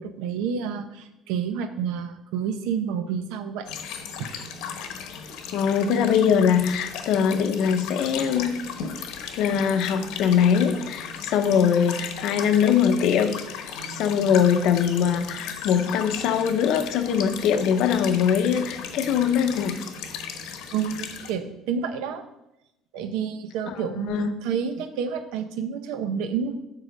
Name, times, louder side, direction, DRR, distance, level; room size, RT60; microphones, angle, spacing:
voice 1, 0.0-3.7 4.2-4.3 20.7-22.2 22.9-26.6, right 7 dB, 80° right, 9 dB, 0.8 m, -29 dB
sound 1, 3.7-21.3, left 6 dB, 70° left, 1.0 m, -36 dB
voice 2, 5.5-8.5 9.4-19.7 23.7-24.3, left 7 dB, 55° left, 8 dB, 0.7 m, -22 dB
7.6 x 4.9 x 5.2 m, 0.87 s
cardioid pair, 170°, 0 cm